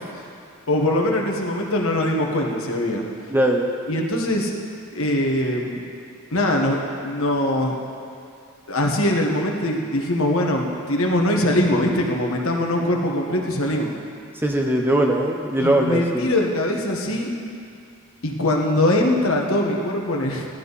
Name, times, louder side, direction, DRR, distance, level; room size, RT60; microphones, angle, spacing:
voice 1, 0.7-3.0 3.9-4.5 4.9-5.8 6.3-7.7 8.7-13.9 15.6-17.3 18.2-20.5, left 1 dB, 70° left, 0 dB, 1.5 m, -22 dB
voice 2, 3.3-3.7 14.4-16.3, right 1 dB, 10° right, 1 dB, 0.7 m, -20 dB
15.5 x 11.5 x 4.2 m, 2.4 s
head